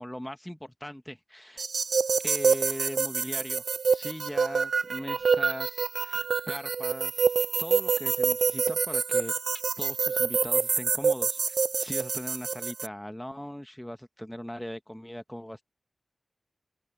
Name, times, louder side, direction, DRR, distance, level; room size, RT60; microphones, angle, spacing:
voice 1, 0.0-1.7 2.2-3.6 3.9-9.3 9.8-15.6, equal, 5° left, 1.1 m, -39 dB
sound 1, 1.6-12.9, right 5 dB, 90° right, 0.4 m, -27 dB
open air
wide cardioid pair, 75°, 0 cm